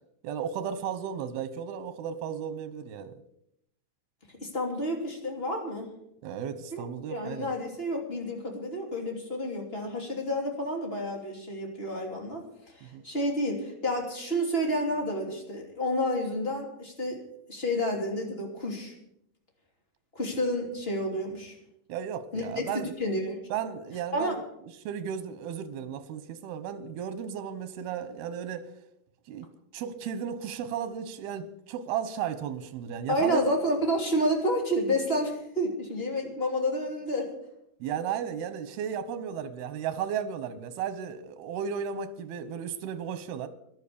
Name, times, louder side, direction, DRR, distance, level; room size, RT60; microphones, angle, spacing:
voice 1, 0.2-3.2 6.2-7.5 12.8-13.0 21.9-22.9 23.5-24.4 24.9-28.7 29.3-29.5 29.7-33.4 37.8-43.5, right 8 dB, 90° right, 2.9 m, -34 dB
voice 2, 4.4-5.9 6.7-6.8 7.1-12.4 12.7-17.2 17.5-18.9 20.1-21.5 22.3-22.4 22.7-23.4 24.1-24.4 33.1-37.3, equal, 15° left, 2.8 m, -30 dB
14.0 x 11.5 x 6.9 m
omnidirectional pair, 4.3 m